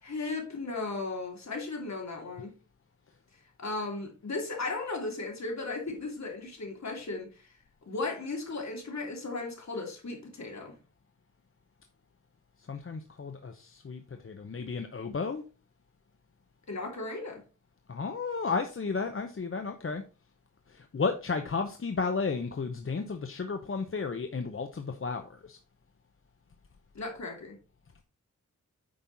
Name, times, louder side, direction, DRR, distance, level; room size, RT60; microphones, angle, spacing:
voice 1, 0.0-2.5 3.6-7.5 7.9-10.8 16.7-17.4 26.9-27.6, left 3 dB, 65° left, 2.8 m, -36 dB
voice 2, 12.7-15.4 17.9-20.0 20.7-25.6, left 4 dB, 45° left, 0.8 m, -33 dB
8.8 x 5.5 x 4.0 m
wide cardioid pair, 95°, 30 cm